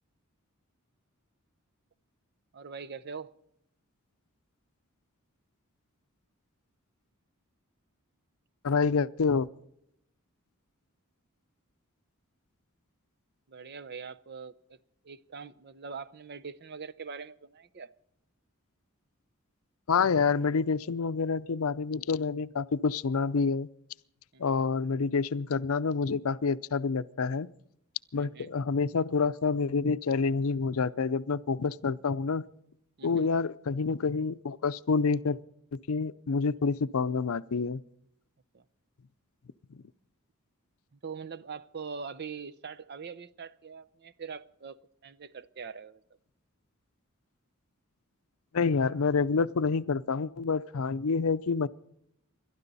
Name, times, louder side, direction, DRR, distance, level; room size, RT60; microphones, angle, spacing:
voice 1, 2.5-3.3 13.5-14.8 15.0-17.9 24.3-24.5 28.2-28.5 33.0-33.3 38.5-38.6 40.9-46.0, right 5 dB, 50° right, 0.6 m, -43 dB
voice 2, 8.6-9.5 19.9-23.7 24.4-27.5 28.1-32.4 33.0-35.4 35.7-37.8 39.7-39.8 48.5-51.7, left 5 dB, 75° left, 0.5 m, -28 dB
28.0 x 12.5 x 4.1 m
head